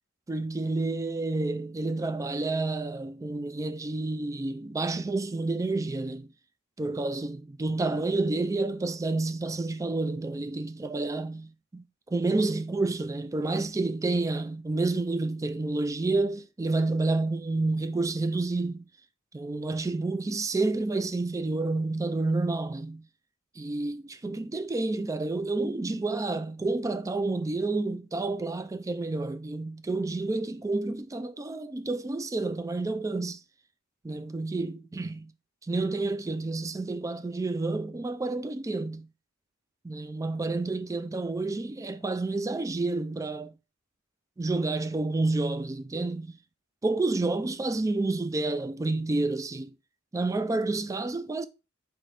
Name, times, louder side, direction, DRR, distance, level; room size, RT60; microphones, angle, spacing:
voice 1, 0.3-6.3 6.8-18.9 19.3-23.1 23.6-33.4 34.0-35.3 35.6-39.1 39.8-43.5 44.4-46.4 46.8-49.7 50.1-51.5, right 2 dB, 15° right, 0.3 m, -29 dB
3.9 x 3.2 x 3.3 m
head